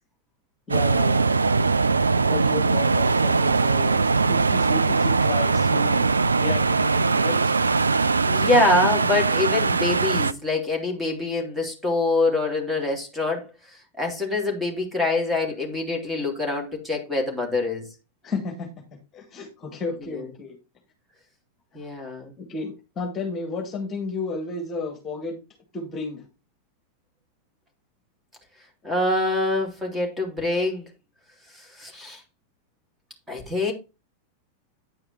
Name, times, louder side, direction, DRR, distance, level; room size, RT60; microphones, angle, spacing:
voice 1, 0.7-1.3 2.3-7.6 18.2-18.7 19.1-20.6 22.4-25.4 25.7-26.3, left 4 dB, 25° left, 2.0 m, -33 dB
sound 1, 0.7-10.3, right 4 dB, 75° right, 0.3 m, -21 dB
voice 2, 8.2-17.9 20.1-20.3 21.7-22.3 28.8-30.9 31.5-32.2 33.3-33.7, left 2 dB, 5° right, 2.9 m, -25 dB
9.5 x 4.9 x 4.4 m
figure-of-eight pair, 90°, 0 cm